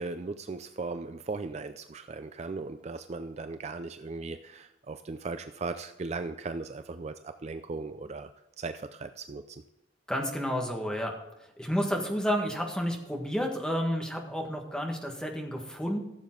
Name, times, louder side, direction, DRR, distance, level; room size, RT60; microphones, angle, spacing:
voice 1, 0.0-8.3 8.6-9.4, right 3 dB, 35° right, 9 dB, 0.4 m, -37 dB
voice 2, 10.1-11.1 11.6-16.0, equal, 5° left, 1 dB, 1.6 m, -30 dB
15.0 x 7.2 x 3.8 m, 0.93 s
head